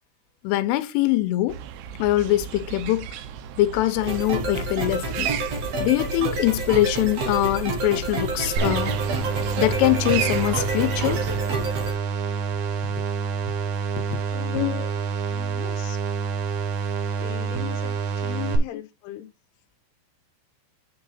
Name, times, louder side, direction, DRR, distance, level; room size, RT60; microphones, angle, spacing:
voice 1, 0.4-1.6 2.0-3.1 3.6-5.3 5.8-8.9 9.6-11.2 14.1-14.2 14.5-14.9, left 15 dB, 90° left, 3.3 m, -23 dB
sound 1, 1.5-11.4, right 8 dB, 85° right, 3.4 m, -35 dB
sound 2, 4.0-11.9, right 2 dB, 55° right, 1.8 m, -29 dB
sound 3, 8.6-18.6, right 6 dB, 70° right, 2.6 m, -27 dB
voice 2, 14.3-14.8 15.3-16.0 17.2-19.3, left 13 dB, 70° left, 2.8 m, -38 dB
9.1 x 3.8 x 4.1 m
omnidirectional pair, 5.7 m